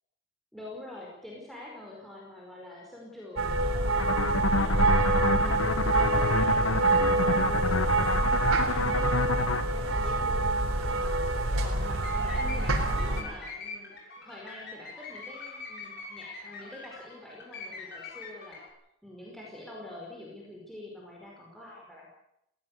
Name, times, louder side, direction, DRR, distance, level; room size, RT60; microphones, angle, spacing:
voice 1, 0.5-7.8 8.6-9.1 9.6-10.5 10.9-11.2 11.5-13.9 14.2-18.6 19.0-22.1, left 1 dB, ahead, -4 dB, 5.0 m, -46 dB
sound 1, 3.4-13.2, right 2 dB, 85° right, 3.9 m, -26 dB
sound 2, 4.0-9.6, left 3 dB, 75° left, 1.1 m, -29 dB
sound 3, 11.9-18.7, left 4 dB, 50° left, 7.3 m, -43 dB
19.5 x 17.5 x 8.2 m, 0.79 s
head